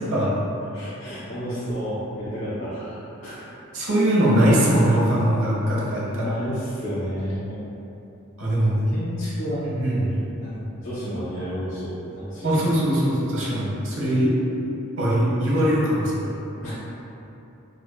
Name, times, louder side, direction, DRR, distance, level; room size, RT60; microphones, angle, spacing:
voice 1, 0.7-3.5 6.1-7.6 8.9-9.6 10.4-12.5 16.6-16.7, equal, 65° left, -13 dB, 1.0 m, -31 dB
voice 2, 3.7-6.3 8.4-8.8 9.6-10.1 12.4-14.3 15.0-16.3, right 1 dB, 60° right, -6 dB, 0.9 m, -21 dB
4.8 x 2.5 x 2.2 m, 2.9 s
head